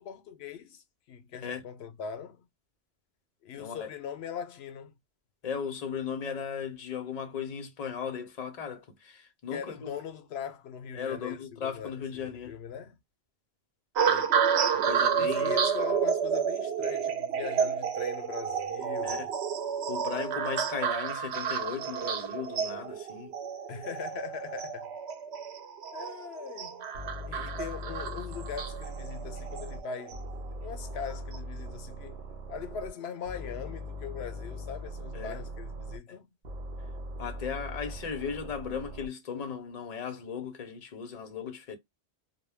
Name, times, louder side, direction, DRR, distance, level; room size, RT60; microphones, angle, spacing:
voice 1, 0.0-2.5 3.4-4.9 9.5-11.9 12.2-13.0 15.2-19.3 23.7-24.9 25.9-27.0 27.3-32.2 32.5-36.3, left 7 dB, 80° left, 0.9 m, -41 dB
voice 2, 3.6-3.9 5.4-10.0 10.9-12.6 14.0-14.3 14.7-15.6 19.0-19.3 19.9-23.3 35.1-35.4 36.1-36.2 37.2-41.8, left 7 dB, 45° left, 0.6 m, -37 dB
sound 1, 14.0-30.4 31.1-31.4, right 7 dB, 85° right, 0.9 m, -30 dB
sound 2, 26.9-29.8 30.1-32.9 33.2-36.0 36.4-39.1, equal, 55° right, 0.7 m, -40 dB
2.2 x 2.2 x 3.3 m
omnidirectional pair, 1.1 m